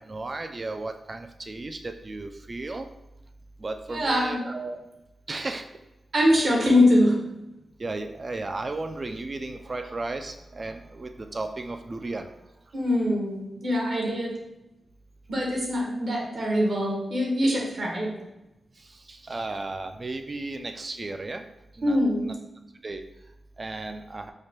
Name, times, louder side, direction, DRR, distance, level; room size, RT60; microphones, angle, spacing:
voice 1, 0.0-2.9 3.6-4.8 5.3-5.6 7.8-12.3 18.9-21.4 21.7-22.0 22.2-22.3 22.8-23.0 23.6-24.3, right 2 dB, 35° right, 7 dB, 0.3 m, -34 dB
voice 2, 3.9-4.4 6.1-7.1 12.7-14.3 15.3-18.1 21.8-22.3, left 1 dB, 65° right, -2 dB, 1.1 m, -23 dB
4.8 x 2.2 x 2.9 m, 0.96 s
cardioid pair, 80°, 0 cm